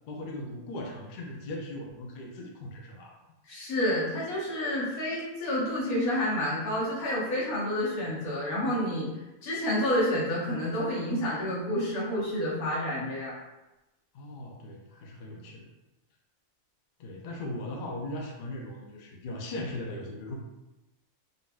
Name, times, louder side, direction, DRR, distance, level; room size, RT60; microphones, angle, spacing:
voice 1, 0.1-3.2 14.1-15.7 17.0-20.3, left 1 dB, 60° left, 0 dB, 0.5 m, -38 dB
voice 2, 3.5-9.1 9.4-13.3, left 1 dB, 90° left, -5 dB, 1.5 m, -29 dB
3.9 x 2.5 x 2.2 m, 1.0 s
omnidirectional pair, 1.5 m